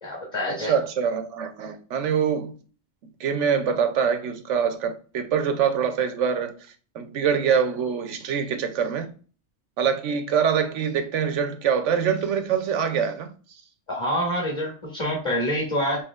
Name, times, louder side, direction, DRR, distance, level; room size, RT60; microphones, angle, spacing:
voice 1, 0.0-0.7 13.9-16.0, equal, 25° left, 1.5 m, -26 dB
voice 2, 0.7-2.5 3.2-6.5 6.9-9.1 9.8-13.3, right 7 dB, 85° right, 1.0 m, -24 dB
5.6 x 3.0 x 2.3 m
omnidirectional pair, 1.2 m